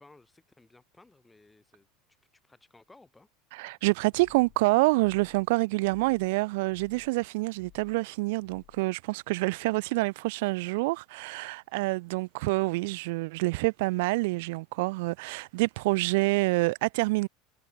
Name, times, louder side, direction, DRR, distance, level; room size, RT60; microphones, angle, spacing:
voice 1, 0.0-1.9 2.3-3.3, left 2 dB, 10° left, 5.5 m, -58 dB
voice 2, 3.5-17.3, right 24 dB, 75° right, 0.4 m, -27 dB
sound 1, 4.1-4.6 5.0-5.5 5.8-6.3 6.7-7.1 7.6-8.0 8.4-8.8, left 17 dB, 50° left, 3.8 m, -57 dB
supercardioid pair, 140°, 0 cm